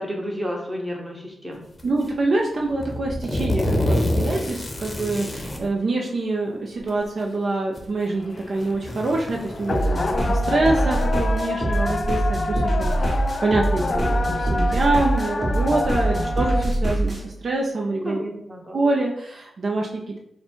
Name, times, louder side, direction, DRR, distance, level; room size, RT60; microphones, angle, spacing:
voice 1, 0.0-1.7 10.2-10.5 18.0-18.8, equal, 15° right, 0 dB, 1.0 m, -32 dB
sound 1, 1.8-2.1 2.7-5.7 6.8-6.9 7.8-7.9 8.4-9.8, left 1 dB, 20° left, 0.8 m, -26 dB
voice 2, 1.8-18.2 18.7-20.2, right 2 dB, 55° right, 0 dB, 0.5 m, -25 dB
sound 2, 8.1-16.6, left 3 dB, 40° left, 0.3 m, -28 dB
sound 3, 9.7-17.2, right 1 dB, 30° right, 1.4 m, -24 dB
4.0 x 2.2 x 4.4 m, 0.77 s
cardioid pair, 85°, 0 cm